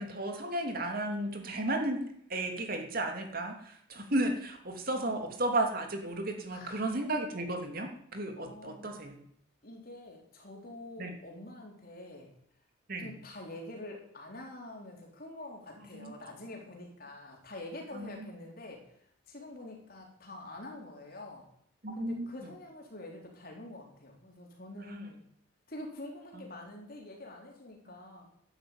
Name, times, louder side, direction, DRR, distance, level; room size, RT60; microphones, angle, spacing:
voice 1, 0.0-2.0 2.3-9.2 11.0-11.1 12.9-13.1 15.9-16.1 17.9-18.3 21.8-22.5 24.8-25.1 26.3-26.4, right 1 dB, 45° right, 4 dB, 2.9 m, -34 dB
voice 2, 6.5-7.0 8.4-8.9 9.6-12.3 13.0-18.9 19.3-21.4 22.0-25.2 25.7-28.3, left 1 dB, 45° left, 0 dB, 4.5 m, -46 dB
12.0 x 12.0 x 9.0 m, 0.69 s
head